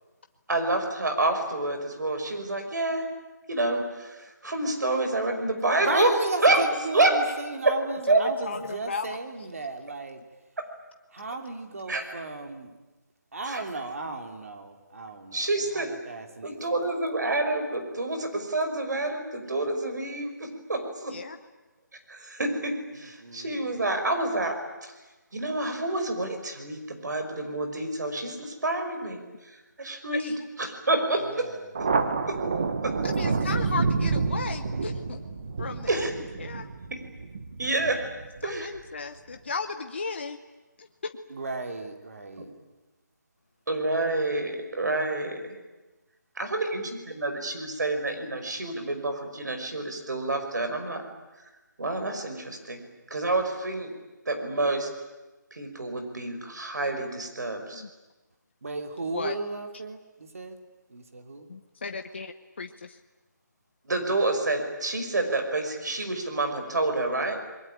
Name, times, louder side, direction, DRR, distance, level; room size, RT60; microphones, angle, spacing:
voice 1, 0.5-3.1 3.5-6.1 6.4-6.6 6.9-7.2 7.6-7.7 8.1-8.2 10.6-10.7 11.9-12.0 13.4-13.6 15.3-15.9 16.4-21.1 22.1-24.6 24.8-24.9 25.3-29.2 29.8-30.3 30.6-31.5 32.3-32.4 32.8-32.9 35.9-36.1 37.6-38.0 38.4-38.7 43.7-45.4 46.4-51.0 51.8-52.8 53.1-53.9 54.3-54.9 55.5-57.8 63.9-67.4, right 2 dB, 65° right, 6 dB, 5.9 m, -28 dB
voice 2, 5.8-10.2 11.1-12.7 13.3-16.8 22.9-23.7 31.3-31.7 41.3-42.5 58.6-60.0 60.3-60.6 60.9-61.5, right 3 dB, 45° right, 5 dB, 2.9 m, -35 dB
voice 3, 8.1-9.1 21.1-21.4 30.1-30.4 33.0-35.2 35.6-36.1 36.4-36.7 38.4-40.4 40.8-41.2 57.7-57.9 59.1-59.3 61.5-63.0, left 4 dB, 35° left, 6 dB, 0.9 m, -35 dB
Thunder, 31.7-38.8, right 4 dB, 25° right, 1.1 m, -29 dB
29.0 x 22.0 x 9.0 m, 1.1 s
hypercardioid pair, 180°, 10 cm